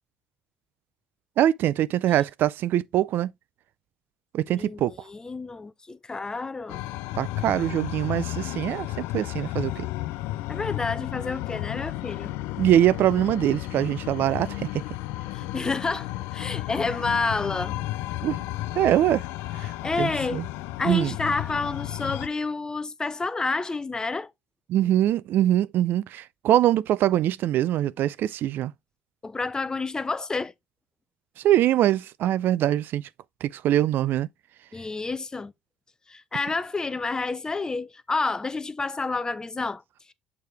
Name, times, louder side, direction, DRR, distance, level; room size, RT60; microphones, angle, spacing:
voice 1, 1.4-3.3 4.3-4.9 7.2-9.9 12.6-14.8 18.2-18.4 18.8-19.2 19.6-20.5 20.8-21.1 24.7-28.7 31.4-33.1 33.4-34.3, right 12 dB, 60° right, 0.3 m, -23 dB
voice 2, 4.5-6.8 10.5-12.3 15.3-17.8 19.8-20.4 20.8-24.3 29.2-30.5 34.7-35.5 36.1-39.8, left 3 dB, 20° left, 0.5 m, -29 dB
sound 1, 6.7-22.3, left 17 dB, 85° left, 0.5 m, -33 dB
6.7 x 4.7 x 3.3 m
cardioid pair, 110°, 4 cm